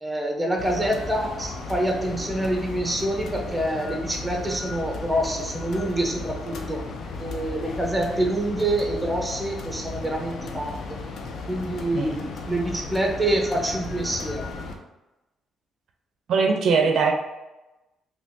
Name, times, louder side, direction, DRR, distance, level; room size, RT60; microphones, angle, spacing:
voice 1, 0.0-6.8 7.2-10.7 11.5-12.2 12.5-14.5, right 1 dB, 5° right, 1 dB, 0.7 m, -26 dB
sound 1, 0.6-14.8, left 3 dB, 65° left, 0.5 m, -35 dB
voice 2, 16.3-17.1, right 5 dB, 70° right, 3 dB, 0.4 m, -20 dB
3.4 x 2.8 x 2.7 m, 1.0 s
cardioid pair, 90°, 0 cm